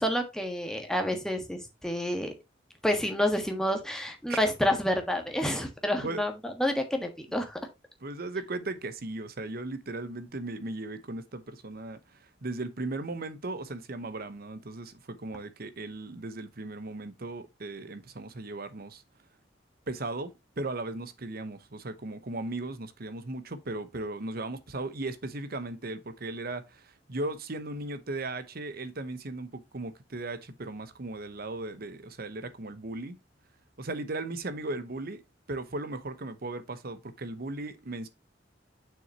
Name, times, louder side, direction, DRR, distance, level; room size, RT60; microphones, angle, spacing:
voice 1, 0.0-2.3 2.8-7.6, left 1 dB, 5° left, 1.5 m, -29 dB
voice 2, 8.0-19.0 19.9-33.2 33.8-35.2 35.5-38.1, right 2 dB, 55° right, 1.0 m, -37 dB
7.0 x 6.3 x 2.9 m
head